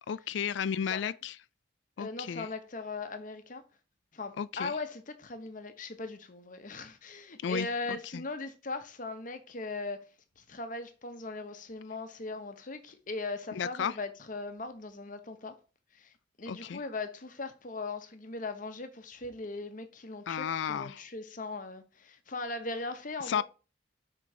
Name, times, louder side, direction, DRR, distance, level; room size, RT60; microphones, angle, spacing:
voice 1, 0.1-1.4 2.0-2.5 4.4-4.7 7.4-8.2 13.5-13.9 16.5-16.8 20.3-21.0 23.3-23.4, left 7 dB, 65° left, 0.3 m, -33 dB
voice 2, 2.0-3.6 4.1-10.0 10.4-15.5 15.9-23.4, left 3 dB, 40° left, 0.8 m, -39 dB
5.8 x 3.7 x 4.7 m
head